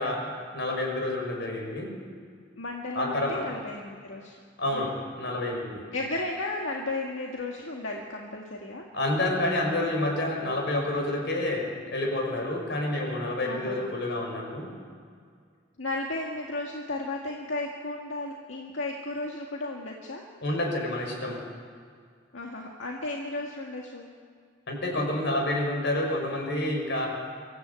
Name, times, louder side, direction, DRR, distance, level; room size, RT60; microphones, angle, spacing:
voice 1, 0.0-1.9 2.9-3.4 4.6-5.8 8.9-14.7 20.4-21.4 24.7-27.1, left 1 dB, 65° left, 1 dB, 5.4 m, -29 dB
voice 2, 2.6-4.4 4.7-4.9 5.9-8.9 13.5-13.9 15.8-20.2 22.3-24.1, left 2 dB, 85° left, -1 dB, 2.0 m, -34 dB
24.0 x 15.0 x 8.4 m, 2.1 s
head